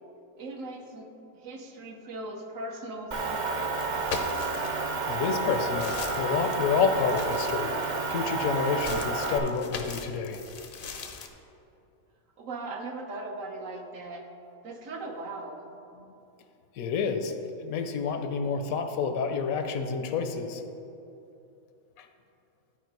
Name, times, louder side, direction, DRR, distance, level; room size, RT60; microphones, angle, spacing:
voice 1, 0.4-3.8 12.4-14.3 14.6-15.7, right 2 dB, 65° right, 2 dB, 1.2 m, -39 dB
Motor vehicle (road) / Engine, 3.1-9.4, right 3 dB, 45° right, 0.7 m, -30 dB
sound 1, 3.8-4.9 5.4-8.2 8.8-11.3, left 4 dB, 50° left, 0.6 m, -39 dB
voice 2, 5.1-7.7 8.1-10.4 16.8-17.3 17.6-20.6 22.0-22.1, left 5 dB, 75° left, 7 dB, 1.1 m, -29 dB
12.0 x 4.8 x 4.6 m, 2.8 s
omnidirectional pair, 1.5 m